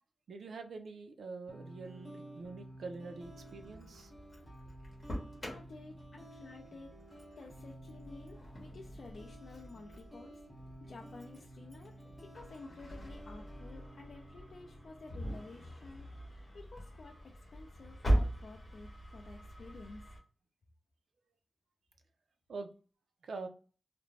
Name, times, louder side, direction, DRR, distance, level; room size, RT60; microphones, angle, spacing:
voice 1, 0.3-4.1 22.5-22.7 23.2-23.5, right 3 dB, 80° right, 6 dB, 0.4 m, -45 dB
sound 1, 1.5-16.5, right 1 dB, 5° right, 0.8 m, -53 dB
Engine starting, 3.2-20.2, right 1 dB, 30° left, 0.9 m, -41 dB
voice 2, 5.4-6.9 7.4-10.4 10.8-11.9 12.2-20.0, left 3 dB, 60° left, 0 dB, 0.4 m, -52 dB
2.5 x 2.1 x 3.1 m, 0.38 s
wide cardioid pair, 150°, 0 cm